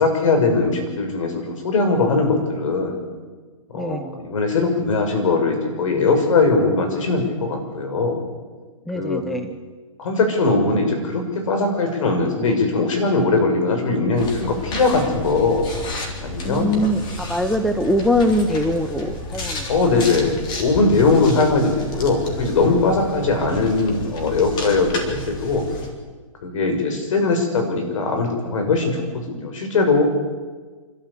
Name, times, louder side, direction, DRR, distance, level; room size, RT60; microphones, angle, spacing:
voice 1, 0.0-3.0 3.7-8.2 8.9-9.2 10.0-15.7 16.2-16.7 19.7-25.6 26.4-30.0, left 3 dB, 65° left, 5 dB, 6.3 m, -20 dB
voice 2, 3.7-4.2 8.9-9.5 16.4-19.7 19.9-20.0 23.4-23.5, left 1 dB, ahead, 7 dB, 0.9 m, -22 dB
sound 1, 14.2-25.9, left 2 dB, 25° left, 3.6 m, -32 dB
27.0 x 13.0 x 8.4 m, 1.4 s
hypercardioid pair, 145°, 18 cm